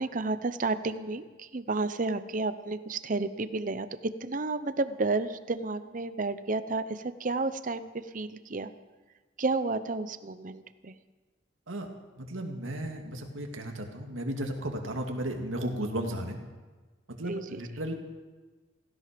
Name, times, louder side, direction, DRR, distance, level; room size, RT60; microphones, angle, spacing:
voice 1, 0.0-8.7 9.4-10.9 17.2-17.6, right 3 dB, 40° right, 12 dB, 0.7 m, -31 dB
voice 2, 12.2-16.4 17.2-17.9, right 1 dB, 90° right, 3 dB, 2.1 m, -34 dB
16.5 x 16.0 x 5.2 m, 1.3 s
head